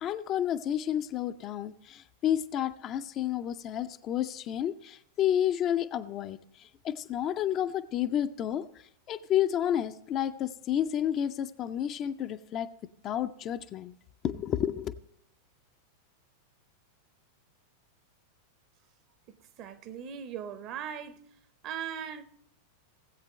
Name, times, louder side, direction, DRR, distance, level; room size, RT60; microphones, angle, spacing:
voice 1, 0.0-8.6 9.1-12.7 13.0-13.9 14.2-14.9, left 10 dB, 35° left, 0.5 m, -30 dB
voice 2, 19.3-21.3 21.6-22.2, right 8 dB, 40° right, 0.9 m, -39 dB
16.5 x 8.1 x 3.2 m
figure-of-eight pair, 90°, 0 cm